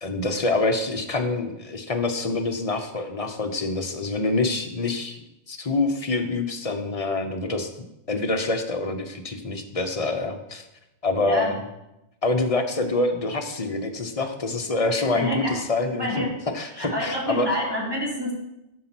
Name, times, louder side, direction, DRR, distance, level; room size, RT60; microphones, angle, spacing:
voice 1, 0.0-7.7 8.1-10.6 11.0-11.6 12.2-16.2 16.5-17.5, left 2 dB, 35° left, 6 dB, 0.9 m, -26 dB
voice 2, 15.1-15.6 15.9-16.4 16.7-18.3, equal, 20° right, -4 dB, 2.4 m, -27 dB
12.0 x 4.7 x 6.0 m, 0.91 s
omnidirectional pair, 1.2 m